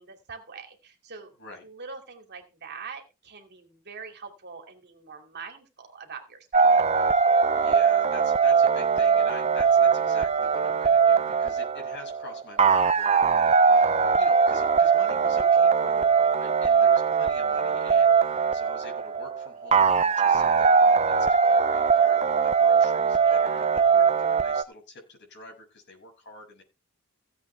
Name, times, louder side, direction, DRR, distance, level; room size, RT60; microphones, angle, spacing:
voice 1, 0.0-1.3 1.6-6.8 16.7-17.0 23.2-23.7, right 5 dB, 50° right, 3 dB, 2.8 m, -44 dB
sound 1, 6.5-24.6, right 6 dB, 30° right, 0.6 m, -21 dB
voice 2, 7.6-26.6, left 2 dB, 55° left, 1 dB, 6.7 m, -46 dB
17.0 x 8.3 x 3.5 m, 0.28 s
head